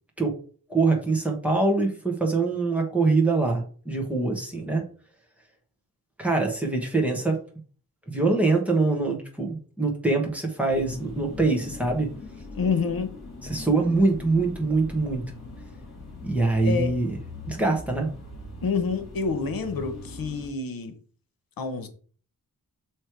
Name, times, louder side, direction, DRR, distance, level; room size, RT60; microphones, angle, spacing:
voice 1, 0.7-4.8 6.2-7.4 8.1-12.1 13.4-15.2 16.2-17.2 17.5-18.1, right 3 dB, 5° right, 0 dB, 1.3 m, -24 dB
sound 1, 10.7-20.5, left 3 dB, 50° left, 2.6 m, -41 dB
voice 2, 12.5-13.1 16.6-16.9 18.6-21.0 21.6-21.9, left 5 dB, 80° left, 8 dB, 1.0 m, -28 dB
6.5 x 3.2 x 4.6 m, 0.43 s
wide cardioid pair, 170°, 35 cm